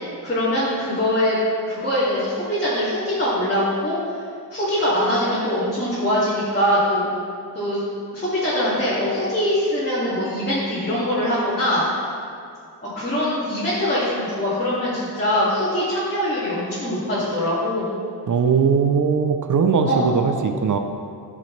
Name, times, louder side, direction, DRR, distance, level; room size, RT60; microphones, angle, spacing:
voice 1, 0.2-1.4 1.7-4.0 4.5-7.1 7.5-7.8 8.1-11.9 12.8-17.9 19.8-20.1, left 1 dB, 25° left, -11 dB, 2.1 m, -22 dB
voice 2, 18.3-20.8, right 6 dB, 50° right, 6 dB, 0.6 m, -19 dB
14.0 x 6.5 x 3.2 m, 2.4 s
wide cardioid pair, 175°, 39 cm